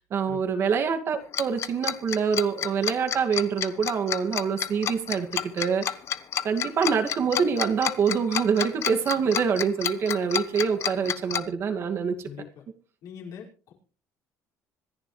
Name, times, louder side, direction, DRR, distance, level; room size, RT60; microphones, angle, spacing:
voice 1, 0.1-5.9 6.4-12.3, right 6 dB, 45° right, 5 dB, 2.2 m, -25 dB
Tick-tock, 1.3-11.4, left 10 dB, 45° left, 1.0 m, -29 dB
voice 2, 12.2-12.6 13.0-13.7, left 8 dB, 70° left, -3 dB, 5.5 m, -42 dB
26.0 x 11.0 x 3.3 m, 0.40 s
cardioid pair, 140°, 6 cm